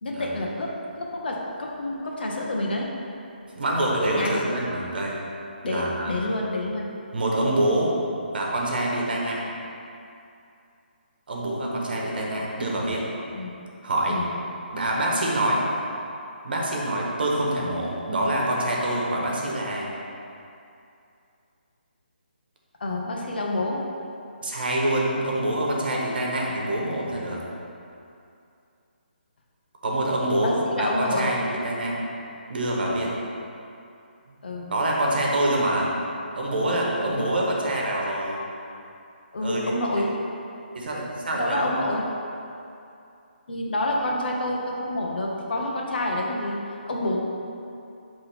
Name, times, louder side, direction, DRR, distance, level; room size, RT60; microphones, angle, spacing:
voice 1, 0.0-2.9 4.2-4.4 5.6-6.9 13.3-13.6 14.1-14.3 22.8-23.8 30.4-31.3 34.4-34.7 37.1-37.3 39.3-40.1 41.3-42.1 43.5-46.6 46.9-47.2, left 1 dB, 65° left, -1 dB, 1.1 m, -28 dB
voice 2, 3.6-5.2 5.6-6.1 7.1-7.9 8.3-9.4 11.3-13.1 13.8-14.2 14.7-15.7 16.4-19.9 24.4-27.4 29.8-32.0 32.5-33.1 34.7-35.9 36.3-38.4 39.4-39.6 40.0-40.1 40.7-41.9, right 1 dB, 65° right, -2 dB, 1.3 m, -25 dB
8.9 x 3.4 x 3.5 m, 2.6 s
hypercardioid pair, 160°, 6 cm